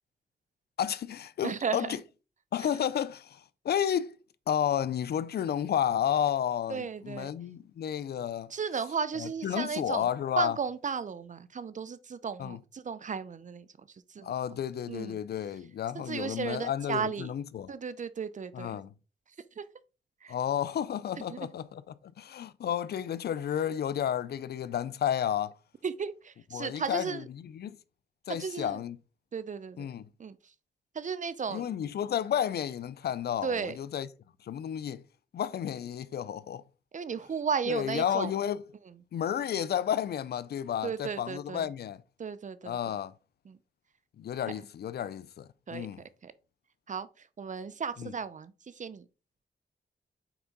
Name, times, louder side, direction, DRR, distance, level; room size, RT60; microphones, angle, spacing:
voice 1, 0.8-2.0 2.5-4.2 4.5-8.5 9.2-10.6 12.4-12.6 14.2-17.7 18.5-18.9 20.3-21.8 22.2-25.5 26.5-27.2 27.5-27.8 28.3-29.0 29.8-30.0 31.5-34.1 34.4-35.0 35.3-36.6 37.7-38.6 39.1-42.0 42.7-43.1 44.2-46.0 48.0-48.1, left 9 dB, 70° left, 0.5 m, -31 dB
voice 2, 1.4-2.0 2.6-2.7 6.7-7.3 8.5-10.1 10.4-14.6 14.9-15.2 15.9-17.3 17.7-18.8 19.6-19.7 20.2-20.4 21.3-21.5 25.8-27.3 28.3-28.8 29.3-29.9 30.2-30.5 30.9-31.7 33.4-33.8 36.9-38.3 38.8-39.0 40.8-41.7 42.2-43.0 43.4-43.6 45.7-45.9 46.2-46.3 46.9-49.1, right 6 dB, 45° right, 0.7 m, -35 dB
6.0 x 4.7 x 4.0 m
cardioid pair, 70°, 17 cm